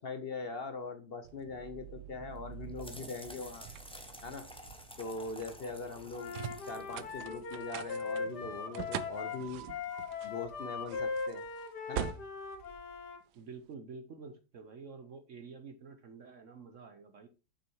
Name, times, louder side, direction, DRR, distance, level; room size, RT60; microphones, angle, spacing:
voice 1, 0.0-3.7 4.2-4.5 5.0-6.3 6.7-9.7 10.2-11.4 11.9-12.2, left 3 dB, 45° left, 9 dB, 0.8 m, -41 dB
sound 1, 1.2-13.6, right 11 dB, 80° right, 1.2 m, -45 dB
sound 2, 2.3-7.9, left 1 dB, 5° left, 0.9 m, -52 dB
Wind instrument woodwind instrument, 6.1-13.2, left 5 dB, 75° left, 1.7 m, -40 dB
voice 2, 13.3-17.3, right 4 dB, 55° right, 8 dB, 1.0 m, -49 dB
7.1 x 6.0 x 4.5 m, 0.33 s
omnidirectional pair, 1.8 m